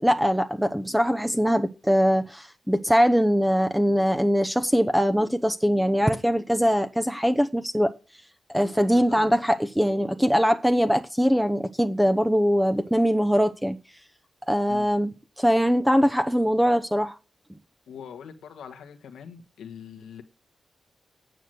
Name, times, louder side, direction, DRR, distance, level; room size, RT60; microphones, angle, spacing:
voice 1, 0.0-7.9 8.5-13.8 14.5-17.2, equal, 5° right, 0.9 m, -22 dB
voice 2, 17.9-20.2, left 7 dB, 85° left, 1.5 m, -42 dB
9.3 x 6.3 x 7.8 m
supercardioid pair, 50°, 0 cm